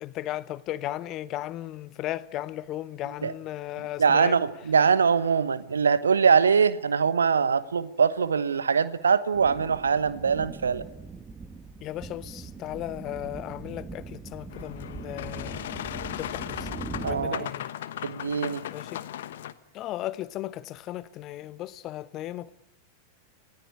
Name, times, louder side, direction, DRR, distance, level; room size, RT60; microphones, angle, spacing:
voice 1, 0.0-4.4 11.8-15.6 16.2-16.7 17.0-17.7 18.7-19.0 19.7-22.5, left 14 dB, 35° left, 0.9 m, -36 dB
voice 2, 4.0-10.9 17.0-17.5 18.0-18.6, right 6 dB, 70° right, 1.2 m, -23 dB
sound 1, 9.3-17.3, right 4 dB, 15° right, 1.5 m, -41 dB
Boat Water vehicle, 14.5-19.5, left 11 dB, 60° left, 1.2 m, -37 dB
28.5 x 18.5 x 9.8 m
figure-of-eight pair, 90°, 0 cm